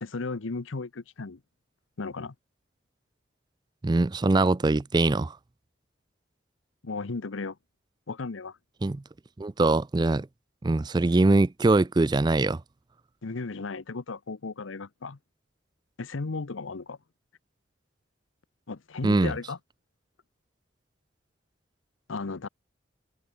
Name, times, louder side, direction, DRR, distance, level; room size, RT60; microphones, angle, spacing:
voice 1, 0.0-1.4 2.0-2.3 6.8-7.6 8.1-8.6 13.2-15.2 16.0-17.0 18.7-19.6 22.1-22.5, left 3 dB, 85° left, 0.8 m, -35 dB
voice 2, 3.8-5.4 8.8-9.0 9.4-10.3 10.6-12.6 19.0-19.3, right 2 dB, 20° right, 0.3 m, -22 dB
head